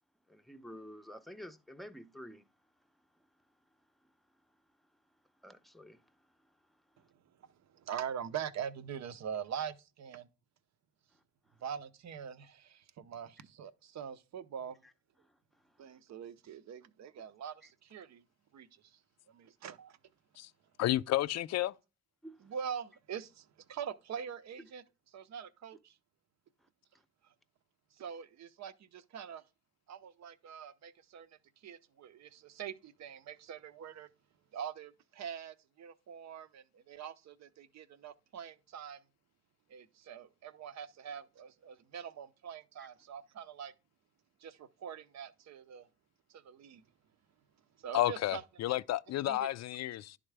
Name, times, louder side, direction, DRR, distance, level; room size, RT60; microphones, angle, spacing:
voice 1, 0.3-2.4 5.4-6.0 22.2-22.4 42.8-42.9, equal, ahead, 0.6 m, -49 dB
voice 2, 7.7-10.3 11.6-14.8 15.8-18.2 18.5-19.0 19.3-20.0 22.4-24.8 25.1-25.9 28.0-29.4 29.9-31.3 31.6-34.1 34.5-39.0 39.7-43.7 44.4-45.9 46.3-46.8 47.8-48.8 49.3-49.5, right 8 dB, 60° right, 0.7 m, -44 dB
voice 3, 20.8-21.7 47.9-50.2, left 14 dB, 55° left, 0.4 m, -31 dB
11.0 x 3.6 x 3.3 m
cardioid pair, 75°, 32 cm